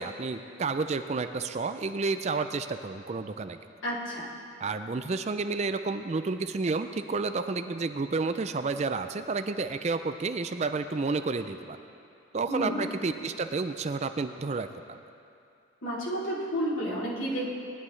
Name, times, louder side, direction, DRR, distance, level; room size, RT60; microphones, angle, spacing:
voice 1, 0.0-3.6 4.6-11.8 12.3-15.0, right 4 dB, 35° right, 9 dB, 0.4 m, -30 dB
voice 2, 3.8-4.3 12.5-12.9 15.8-17.5, equal, 80° left, -7 dB, 3.2 m, -31 dB
19.5 x 11.0 x 3.2 m, 2.5 s
head